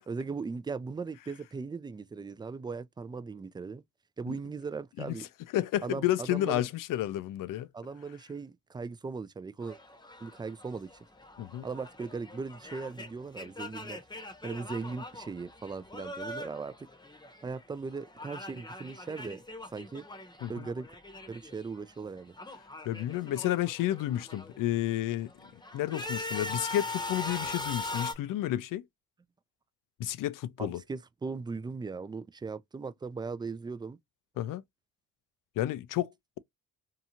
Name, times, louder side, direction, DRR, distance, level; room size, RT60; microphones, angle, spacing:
voice 1, 0.1-3.8 4.2-5.3 5.8-6.7 7.7-9.8 10.2-10.9 11.6-14.0 14.4-16.9 17.4-19.4 19.7-20.0 20.5-20.9 21.3-22.4 30.6-34.0, right 4 dB, 15° right, 0.3 m, -38 dB
voice 2, 5.5-7.7 11.4-11.7 20.4-20.7 22.9-25.3 25.7-28.9 30.0-30.8 34.4-34.6 35.6-36.4, left 13 dB, 70° left, 0.5 m, -31 dB
sound 1, 9.6-17.6 17.9-21.7 21.9-24.6 25.1-28.1, left 2 dB, 10° left, 0.8 m, -41 dB
2.8 x 2.3 x 2.8 m
supercardioid pair, 65°, 34 cm